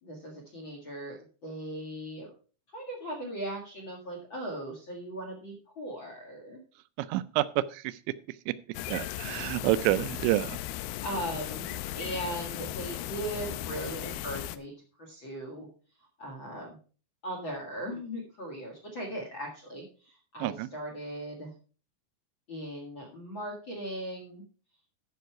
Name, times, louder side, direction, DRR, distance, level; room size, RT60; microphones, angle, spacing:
voice 1, 0.0-2.3 2.7-6.6 11.0-14.7 15.0-15.7 16.2-16.8 17.2-21.5 22.5-24.4, right 1 dB, 55° left, 1 dB, 1.4 m, -38 dB
voice 2, 7.0-8.0 8.3-8.5 8.9-10.6 20.4-20.7, right 15 dB, 85° right, 15 dB, 2.9 m, -28 dB
sound 1, 8.7-14.6, left 14 dB, 90° left, 2.3 m, -37 dB
13.5 x 5.7 x 4.6 m, 0.38 s
omnidirectional pair, 5.3 m